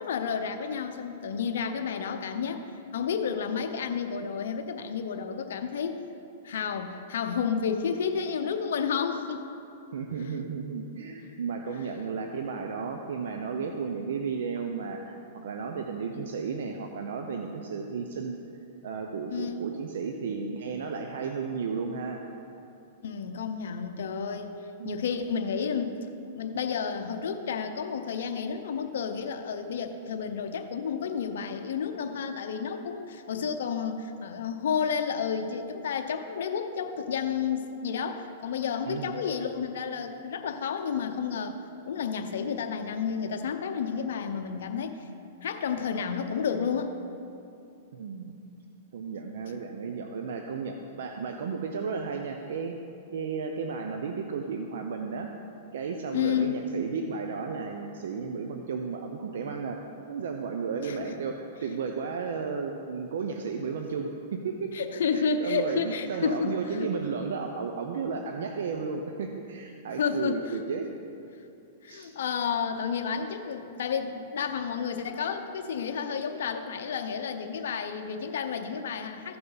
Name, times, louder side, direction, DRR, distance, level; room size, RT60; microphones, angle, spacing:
voice 1, 0.0-2.6 2.9-6.0 6.4-9.5 19.3-19.6 23.0-24.6 24.8-25.9 26.3-41.6 41.8-45.0 45.4-47.0 56.1-56.6 60.8-61.1 64.7-66.9 70.0-70.6 71.8-79.4, left 6 dB, 75° left, 5 dB, 0.7 m, -31 dB
voice 2, 9.9-18.3 18.8-22.2 24.8-25.0 38.9-39.2 47.9-48.4 48.9-52.7 53.1-55.3 55.7-59.8 60.1-64.7 65.1-70.9 71.9-72.1, right 5 dB, 75° right, 4 dB, 0.6 m, -33 dB
14.5 x 5.8 x 4.0 m, 2.6 s
hypercardioid pair, 140°, 0 cm